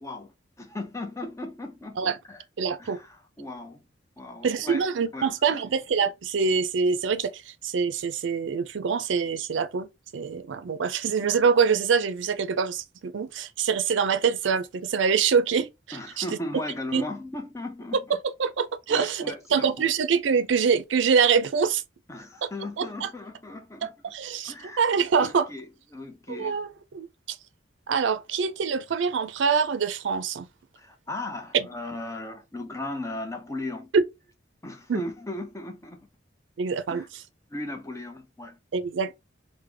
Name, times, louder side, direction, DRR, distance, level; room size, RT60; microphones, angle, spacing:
voice 1, 0.0-2.4 2.8-3.8 4.2-4.9 5.1-5.6 15.9-18.2 18.9-19.9 22.1-23.9 24.4-24.8 25.2-26.6 30.8-33.9 34.6-36.1 36.9-37.1 37.5-38.6, left 2 dB, 15° left, 0.5 m, -37 dB
voice 2, 2.6-3.0 4.4-16.2 16.9-17.0 18.4-19.2 19.5-21.8 22.8-23.1 23.8-25.5 26.3-27.1 27.9-30.5 31.5-31.7 33.9-34.0 34.9-35.0 36.6-37.0 38.7-39.1, right 6 dB, 70° right, 0.4 m, -25 dB
3.3 x 2.1 x 3.3 m
head